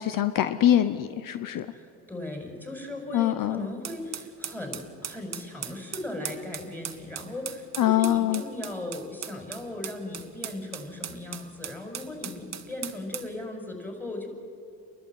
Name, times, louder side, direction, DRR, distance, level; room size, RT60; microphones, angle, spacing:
voice 1, 0.0-1.7 3.1-3.7 7.8-8.4, left 12 dB, 60° left, 12 dB, 1.0 m, -24 dB
voice 2, 1.7-14.3, left 1 dB, 5° left, 3 dB, 5.8 m, -37 dB
sound 1, 3.8-13.3, right 8 dB, 45° right, 1.6 m, -39 dB
29.5 x 11.5 x 9.3 m, 2.5 s
supercardioid pair, 75°, 37 cm